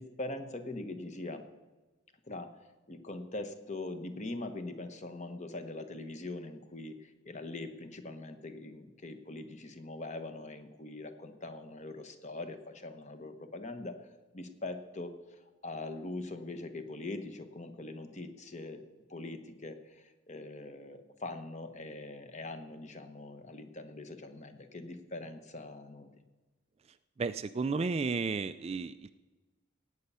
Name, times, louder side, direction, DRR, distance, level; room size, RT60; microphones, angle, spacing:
voice 1, 0.0-1.4 2.3-2.5 2.9-14.0 14.3-18.8 19.1-26.1, left 2 dB, 35° left, 8 dB, 1.0 m, -42 dB
voice 2, 27.2-29.1, right 4 dB, 30° right, 12 dB, 0.3 m, -33 dB
17.0 x 8.3 x 5.5 m, 1.2 s
head